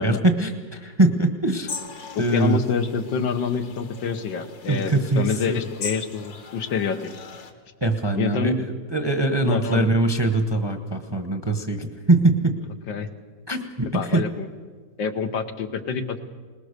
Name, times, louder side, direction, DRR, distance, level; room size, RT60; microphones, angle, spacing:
voice 1, 0.0-1.7 2.2-2.6 4.7-5.7 7.8-12.5 13.5-14.2, right 2 dB, 20° right, 7 dB, 0.8 m, -22 dB
sound 1, 1.7-7.5, left 5 dB, 60° left, 1.9 m, -39 dB
voice 2, 2.2-7.0 8.2-8.6 9.4-9.9 12.9-13.1 13.9-14.5 15.0-16.2, left 5 dB, 85° left, 7 dB, 1.9 m, -27 dB
21.0 x 20.0 x 6.7 m, 1.5 s
omnidirectional pair, 2.0 m